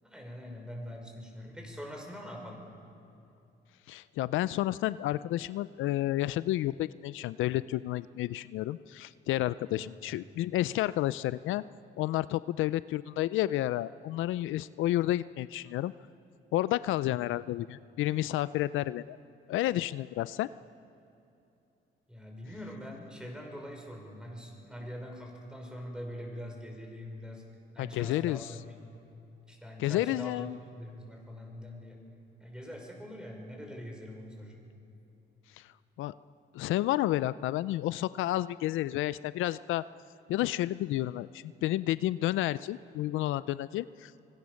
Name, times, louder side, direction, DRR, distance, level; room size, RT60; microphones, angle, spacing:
voice 1, 0.0-2.6 9.8-10.1 22.1-27.4 27.7-29.0 29.5-30.5 30.8-32.0 32.4-34.6, equal, 5° right, 1 dB, 5.8 m, -43 dB
voice 2, 3.9-11.6 12.0-15.9 16.5-19.2 19.5-20.5 27.8-28.5 29.8-30.6 35.6-35.7 36.0-36.1 36.5-39.8 40.3-44.2, left 15 dB, 85° left, 17 dB, 0.4 m, -31 dB
25.5 x 19.0 x 6.4 m, 2.8 s
cardioid pair, 90°, 20 cm